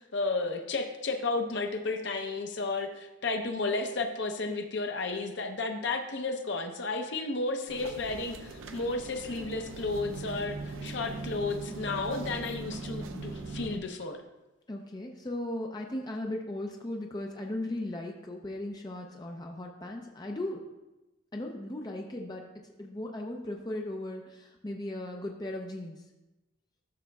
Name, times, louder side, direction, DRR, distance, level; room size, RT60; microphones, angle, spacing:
voice 1, 0.0-14.2, left 3 dB, 60° left, 5 dB, 0.7 m, -33 dB
sound 1, 7.7-13.8, right 3 dB, 75° right, 0.5 m, -40 dB
voice 2, 14.7-20.6 21.3-22.4 22.8-26.0, left 1 dB, 20° left, 1 dB, 0.5 m, -37 dB
12.0 x 6.3 x 2.3 m, 1.0 s
head